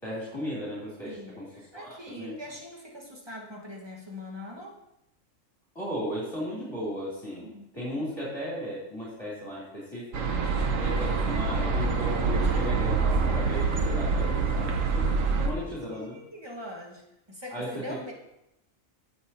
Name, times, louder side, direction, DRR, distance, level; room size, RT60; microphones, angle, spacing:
voice 1, 0.0-1.5 1.7-2.4 5.7-10.2 10.8-15.1 15.4-16.2 17.5-17.7, equal, 20° left, -9 dB, 3.2 m, -36 dB
voice 2, 1.0-4.8 7.4-7.7 15.2-18.1, left 1 dB, 20° right, -2 dB, 1.6 m, -43 dB
sound 1, 10.1-15.5, right 4 dB, 75° right, 1.3 m, -26 dB
16.0 x 5.9 x 2.9 m, 0.86 s
omnidirectional pair, 1.3 m